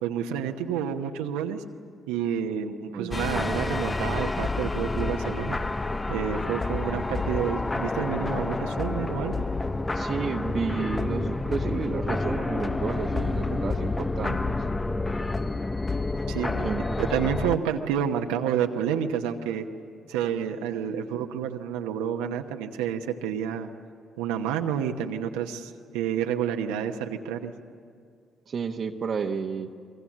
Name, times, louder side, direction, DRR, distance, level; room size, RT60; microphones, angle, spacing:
voice 1, 0.0-1.6 2.1-5.6 6.1-9.4 16.3-16.7 17.0-19.7 20.1-23.7 24.2-27.5, right 8 dB, 90° right, 4 dB, 1.0 m, -29 dB
sound 1, 3.1-17.6, left 2 dB, 25° left, 0.7 m, -29 dB
voice 2, 9.9-14.6 16.6-17.2 28.5-29.7, right 6 dB, 55° right, 2 dB, 1.1 m, -32 dB
sound 2, 10.4-15.4, left 5 dB, 90° left, 5.1 m, -42 dB
24.0 x 23.0 x 7.4 m, 2.3 s
hypercardioid pair, 55°, 0 cm